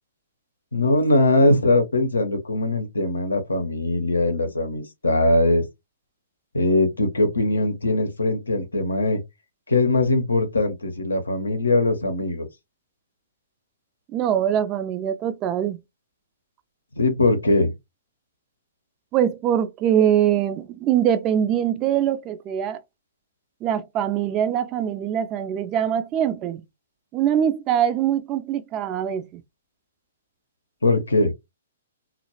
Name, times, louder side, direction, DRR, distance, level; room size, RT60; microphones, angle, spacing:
voice 1, 0.7-5.7 6.5-9.2 9.7-12.5 17.0-17.7 30.8-31.3, left 2 dB, 90° left, 0.6 m, -21 dB
voice 2, 14.1-15.8 19.1-22.8 23.6-26.6 27.1-29.4, right 10 dB, 30° right, 0.3 m, -23 dB
2.2 x 2.0 x 2.9 m
hypercardioid pair, 125°, 0 cm